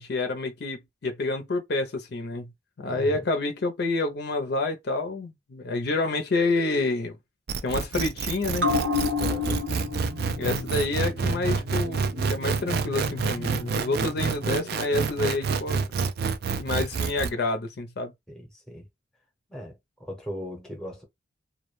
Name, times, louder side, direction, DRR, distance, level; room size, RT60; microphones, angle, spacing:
voice 1, 0.0-2.5 2.8-7.2 7.6-8.7 10.4-12.0 12.3-15.8 16.6-18.1, left 2 dB, 55° left, 0.5 m, -28 dB
voice 2, 2.9-3.2 9.2-9.6 18.3-18.9 19.5-21.0, equal, 5° left, 0.7 m, -38 dB
sound 1, 7.5-17.3, right 5 dB, 55° right, 0.3 m, -28 dB
sound 2, 8.6-15.5 15.8-15.9, left 3 dB, 80° right, 1.0 m, -32 dB
2.2 x 2.1 x 3.0 m
head